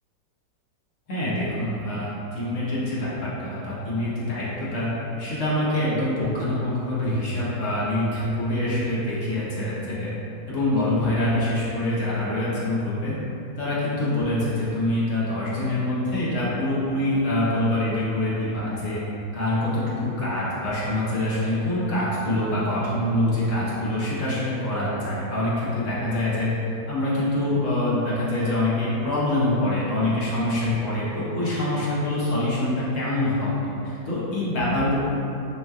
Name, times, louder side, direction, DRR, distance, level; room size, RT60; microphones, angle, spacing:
voice 1, 1.1-4.9 5.2-10.1 10.5-13.1 13.6-19.0 19.3-26.5 26.9-33.5 33.8-35.0, left 1 dB, 50° left, -8 dB, 1.2 m, -25 dB
5.5 x 3.1 x 2.4 m, 2.9 s
omnidirectional pair, 1.9 m